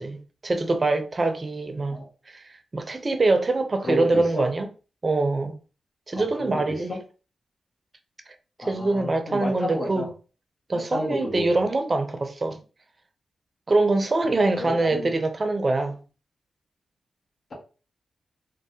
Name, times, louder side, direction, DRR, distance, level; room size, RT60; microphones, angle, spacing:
voice 1, 0.0-2.0 2.3-4.7 5.0-5.5 6.1-7.0 8.6-10.1 10.7-12.6 13.7-16.0, right 2 dB, 40° right, 0.5 m, -24 dB
voice 2, 3.8-4.5 6.1-7.0 8.6-10.1 10.7-11.5 14.2-15.1, equal, 55° left, 1.1 m, -31 dB
3.2 x 2.2 x 2.7 m
cardioid pair, 55°, 0 cm